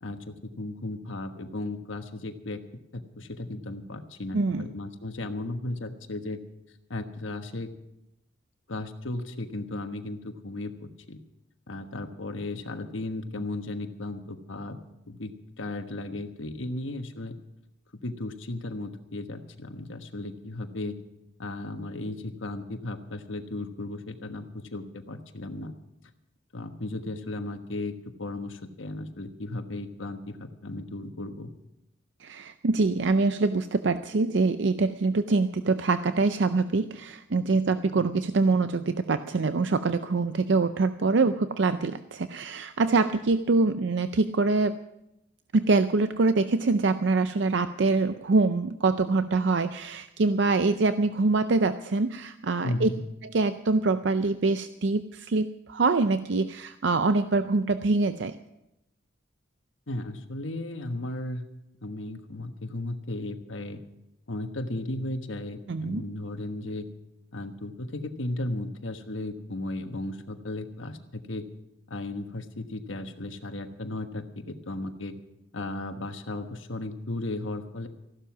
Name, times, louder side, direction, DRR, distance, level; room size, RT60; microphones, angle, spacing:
voice 1, 0.0-2.6 2.9-6.4 6.9-7.7 8.7-11.2 11.7-14.8 15.1-17.3 18.0-21.0 21.4-25.7 26.5-27.9 28.2-31.5 52.6-53.0 59.9-61.5 61.8-63.8 64.3-66.9 67.3-71.4 71.9-75.1 75.5-77.9, left 2 dB, 85° left, 7 dB, 1.3 m, -35 dB
voice 2, 4.3-4.7 32.2-44.8 45.5-52.9 53.2-58.3 65.7-66.0, right 3 dB, 65° right, 10 dB, 0.5 m, -24 dB
15.0 x 12.0 x 6.0 m, 0.88 s
head